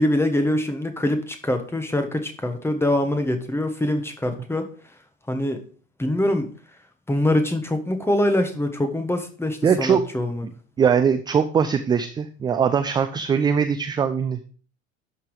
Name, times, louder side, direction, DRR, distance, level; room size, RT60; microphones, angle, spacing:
voice 1, 0.0-4.6 5.3-5.6 6.0-6.5 7.1-10.5, left 1 dB, 5° left, 6 dB, 1.4 m, -24 dB
voice 2, 9.6-10.0 10.8-14.4, right 7 dB, 10° right, 9 dB, 0.4 m, -21 dB
12.0 x 3.9 x 4.9 m, 0.42 s
figure-of-eight pair, 70°, 39 cm